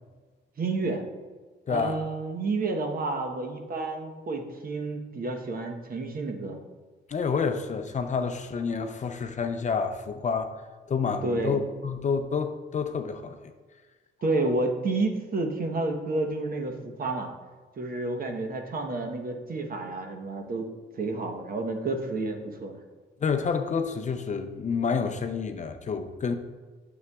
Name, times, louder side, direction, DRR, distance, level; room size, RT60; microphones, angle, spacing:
voice 1, 0.6-1.0 1.7-6.6 11.2-11.6 14.2-17.3 17.8-20.7 20.9-22.8, right 2 dB, 45° right, 4 dB, 1.0 m, -30 dB
voice 2, 1.7-2.0 7.1-10.5 10.9-13.4 23.2-26.3, left 5 dB, 35° left, 7 dB, 0.6 m, -29 dB
9.4 x 7.0 x 2.3 m, 1.4 s
cardioid pair, 90°, 20 cm